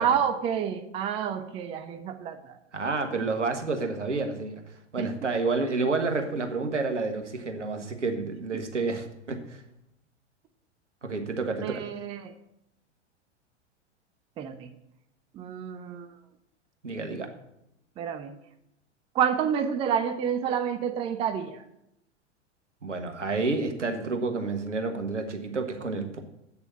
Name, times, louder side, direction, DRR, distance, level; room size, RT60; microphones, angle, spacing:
voice 1, 0.0-2.6 5.0-5.1 11.6-12.3 14.4-14.7 15.3-16.1 18.0-18.4 19.1-21.6, right 8 dB, 15° right, 9 dB, 0.5 m, -29 dB
voice 2, 2.7-4.6 4.9-9.6 11.0-11.8 16.8-17.3 22.8-26.2, right 3 dB, 75° right, 6 dB, 1.5 m, -29 dB
8.3 x 6.8 x 7.0 m, 0.82 s
figure-of-eight pair, 95°, 36 cm